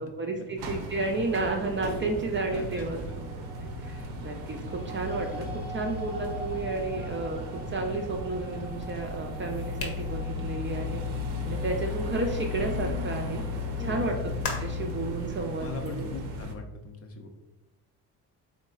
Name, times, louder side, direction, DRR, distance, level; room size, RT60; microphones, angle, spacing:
voice 1, 0.0-3.0 3.6-11.0 11.5-13.4 13.8-14.2 14.6-16.1, right 3 dB, 30° right, 1 dB, 0.4 m, -32 dB
sound 1, 0.6-16.5, left 2 dB, 75° right, 0.6 m, -35 dB
voice 2, 2.4-3.3 13.8-14.0 15.6-17.3, left 2 dB, 35° left, 3 dB, 0.5 m, -40 dB
sound 2, 3.1-15.3, right 2 dB, 5° right, 0.8 m, -46 dB
sound 3, 9.7-13.0 14.4-14.9, left 3 dB, 80° left, 0.8 m, -39 dB
3.6 x 3.1 x 2.2 m, 1.0 s
supercardioid pair, 75°, 44 cm